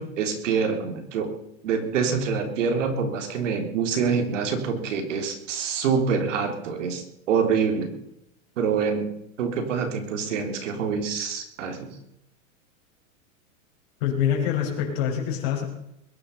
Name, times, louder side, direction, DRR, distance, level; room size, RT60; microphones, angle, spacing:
voice 1, 0.0-1.3 1.6-7.9 8.6-9.1 9.4-12.0, right 6 dB, 60° right, 5 dB, 3.6 m, -26 dB
voice 2, 14.0-15.6, left 9 dB, 45° left, -1 dB, 5.8 m, -25 dB
21.5 x 10.5 x 5.6 m, 0.80 s
supercardioid pair, 165°, 41 cm